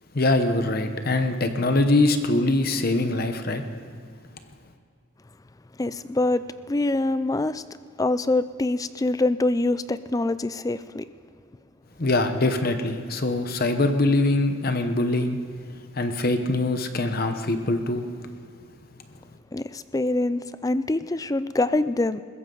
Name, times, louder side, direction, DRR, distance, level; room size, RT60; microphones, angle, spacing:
voice 1, 0.1-3.6 12.0-15.4 16.0-18.1, left 2 dB, 45° left, 7 dB, 0.9 m, -23 dB
voice 2, 5.8-7.6 8.0-11.0 19.5-22.2, left 2 dB, 15° left, 14 dB, 0.3 m, -25 dB
21.5 x 15.5 x 3.9 m, 2.3 s
head